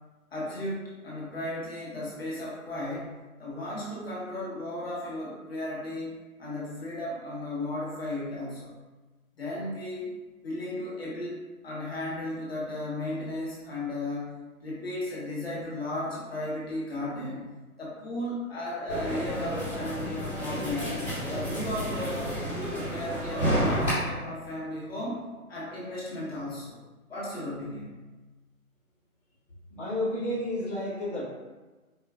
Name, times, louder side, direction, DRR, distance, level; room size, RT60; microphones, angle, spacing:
voice 1, 0.3-3.1 3.4-8.8 9.4-10.1 10.4-14.3 14.6-17.5 17.8-20.9 21.3-22.3 22.7-25.2 25.5-26.8 27.1-27.9, left 1 dB, 40° left, -6 dB, 0.9 m, -35 dB
sound 1, 18.9-23.9, equal, 5° right, 0.9 m, -30 dB
voice 2, 29.7-31.2, left 1 dB, 30° right, -9 dB, 0.5 m, -31 dB
4.4 x 2.3 x 2.2 m, 1.2 s
hypercardioid pair, 165°, 44 cm